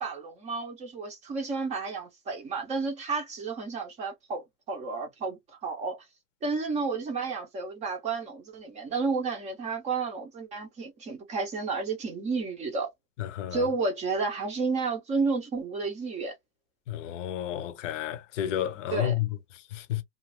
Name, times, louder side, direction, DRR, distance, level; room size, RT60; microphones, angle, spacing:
voice 1, 0.0-6.0 6.4-12.9 13.5-16.3 18.9-19.2, right 4 dB, 15° right, 0.6 m, -31 dB
voice 2, 13.2-13.6 16.9-19.3 19.7-20.0, left 11 dB, 50° left, 0.7 m, -31 dB
2.5 x 2.4 x 3.0 m
hypercardioid pair, 135°, 49 cm